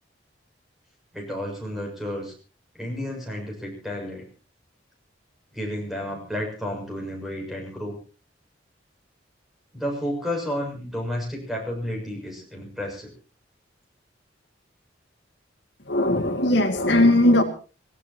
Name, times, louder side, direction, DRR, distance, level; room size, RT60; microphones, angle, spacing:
voice 1, 1.1-2.3 2.7-4.3 5.5-8.0 9.7-13.1, equal, ahead, 1 dB, 7.0 m, -31 dB
voice 2, 15.9-17.4, left 1 dB, 65° left, 5 dB, 1.9 m, -19 dB
27.0 x 16.5 x 2.9 m, 0.36 s
head